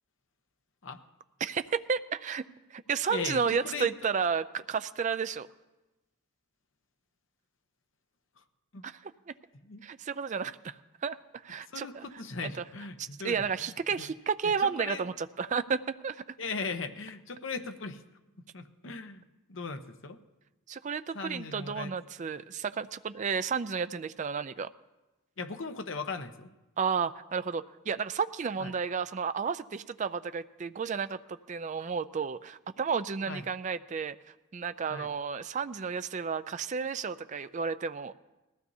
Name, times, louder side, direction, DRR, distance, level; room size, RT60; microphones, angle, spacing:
voice 1, 1.4-2.4 2.7-5.5 8.8-9.3 9.8-10.7 11.0-11.2 11.4-12.0 12.4-12.6 13.0-16.2 20.7-24.7 26.8-34.2 34.5-38.1, right 6 dB, 35° right, 12 dB, 0.4 m, -32 dB
voice 2, 3.1-3.9 8.7-8.8 9.6-9.8 11.7-14.1 14.4-15.0 16.4-18.0 18.5-19.2 19.5-20.2 21.1-21.9 25.4-26.5 28.6-28.7 33.3-33.4 34.9-35.1, left 4 dB, 60° left, 7 dB, 0.9 m, -38 dB
20.0 x 15.0 x 2.7 m, 1.0 s
head